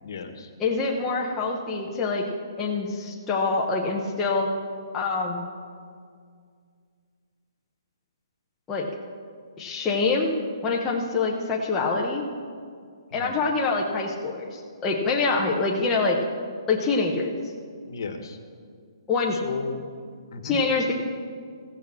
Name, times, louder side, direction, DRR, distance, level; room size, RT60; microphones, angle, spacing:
voice 1, 0.0-0.5 13.1-13.4 17.9-18.4 19.3-19.8 20.3-20.6, left 5 dB, 50° left, 6 dB, 1.3 m, -35 dB
voice 2, 0.6-2.2 2.6-4.5 4.9-5.5 8.7-8.9 9.6-10.3 10.6-12.2 13.1-16.2 16.7-17.3 19.1-19.4 20.4-20.9, left 4 dB, 10° left, -3 dB, 0.7 m, -25 dB
15.5 x 6.3 x 7.2 m, 2.1 s
hypercardioid pair, 175°, 3 cm